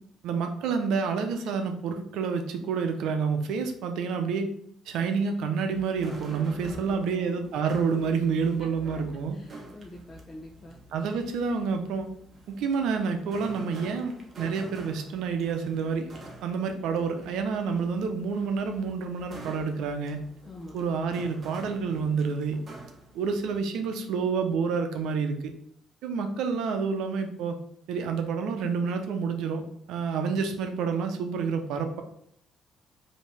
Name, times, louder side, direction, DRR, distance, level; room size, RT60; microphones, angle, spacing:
voice 1, 0.2-4.5 4.9-9.4 10.9-12.1 12.5-16.1 16.4-20.2 20.7-22.6 23.1-25.5 26.0-27.6 27.9-29.6 29.9-32.0, right 5 dB, 80° right, 6 dB, 0.6 m, -28 dB
sound 1, 5.7-23.6, right 2 dB, 40° right, 1.0 m, -47 dB
voice 2, 6.6-7.5 8.6-10.8 20.4-20.8, left 1 dB, 30° left, -2 dB, 0.7 m, -46 dB
5.0 x 2.8 x 3.3 m, 0.70 s
cardioid pair, 90°, 0 cm